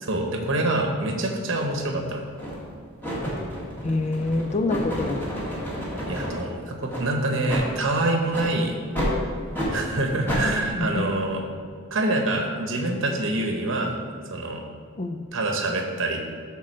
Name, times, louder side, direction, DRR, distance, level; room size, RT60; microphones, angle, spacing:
voice 1, 0.0-2.2 6.0-8.7 9.7-11.4 11.9-14.0 14.3-14.6 15.3-16.2, right 2 dB, 65° right, 2 dB, 0.9 m, -25 dB
sound 1, 1.5-1.7 2.4-2.7 3.0-6.4 6.9-7.0 7.5-7.7 8.3-8.5 8.9-9.1 9.5-9.7 10.3-10.4, equal, 10° left, 1.8 m, -30 dB
voice 2, 3.8-5.3 10.8-11.0 15.0-15.2, left 2 dB, 30° left, 7 dB, 0.4 m, -26 dB
8.6 x 3.8 x 6.3 m, 2.1 s
head